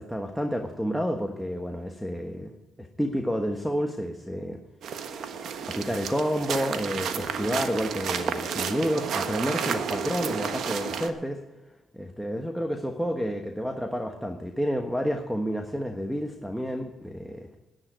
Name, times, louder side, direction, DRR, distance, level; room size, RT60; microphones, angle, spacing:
voice 1, 0.0-2.5 2.8-4.6 5.7-11.4 11.9-17.6, equal, ahead, 3 dB, 1.3 m, -30 dB
sound 1, 4.8-11.1, right 7 dB, 70° right, 1.3 m, -31 dB
11.0 x 10.5 x 9.0 m, 1.1 s
cardioid pair, 90°, 0 cm